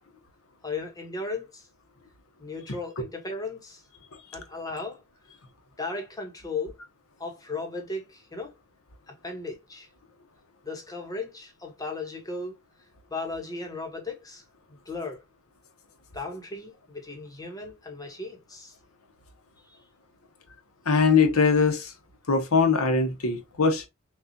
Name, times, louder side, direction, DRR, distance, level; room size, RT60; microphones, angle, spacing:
voice 1, 0.6-1.7 2.4-3.8 4.3-5.0 5.8-6.7 7.2-8.5 9.1-9.9 10.6-12.5 13.1-14.4 14.9-15.2 16.1-18.7 19.7-19.8, left 3 dB, 15° left, 1.0 m, -36 dB
voice 2, 20.9-21.9 22.3-23.9, left 4 dB, 80° left, 0.9 m, -21 dB
5.9 x 2.4 x 2.7 m
head